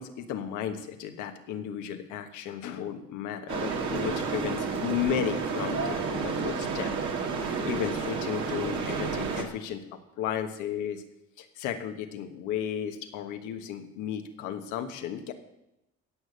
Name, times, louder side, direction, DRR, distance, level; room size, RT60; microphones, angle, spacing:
voice 1, 0.0-6.9 7.4-11.0 11.4-15.3, left 9 dB, 90° left, 6 dB, 1.4 m, -34 dB
sound 1, 3.5-9.4, right 5 dB, 75° right, 2.3 m, -31 dB
17.0 x 6.6 x 6.6 m, 0.88 s
supercardioid pair, 70°, 30 cm